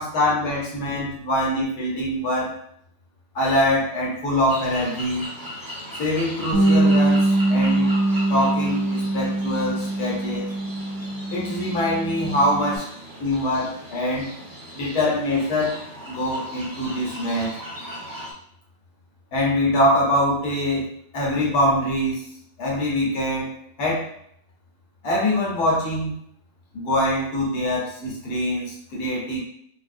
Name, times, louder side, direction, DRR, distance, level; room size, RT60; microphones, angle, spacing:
voice 1, 0.0-2.5 3.3-5.3 6.0-7.9 8.3-10.4 11.3-12.9 13.2-14.3 14.7-17.6 19.3-20.9 21.1-22.3 22.6-24.1 25.0-26.1 26.7-29.4, left 1 dB, 70° left, -4 dB, 1.5 m, -24 dB
sound 1, 4.5-18.3, equal, 25° right, 0.5 m, -38 dB
Bass guitar, 6.5-12.8, right 2 dB, 70° right, 1.0 m, -22 dB
3.7 x 2.7 x 2.5 m, 0.69 s
omnidirectional pair, 1.7 m